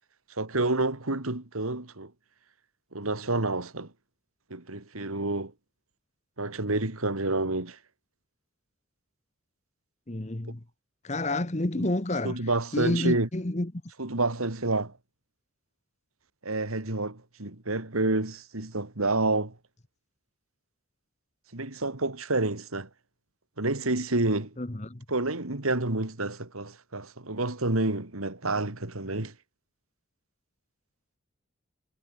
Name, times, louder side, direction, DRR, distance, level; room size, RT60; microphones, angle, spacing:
voice 1, 0.4-2.1 2.9-3.9 4.5-5.5 6.4-7.8 11.8-11.9 12.2-13.3 14.0-14.9 16.4-19.5 21.5-22.9 23.6-24.5 25.1-29.3, right 2 dB, 90° right, 2.7 m, -29 dB
voice 2, 10.1-10.6 11.0-12.4 12.7-13.7 24.6-25.0, left 1 dB, 35° left, 1.2 m, -29 dB
head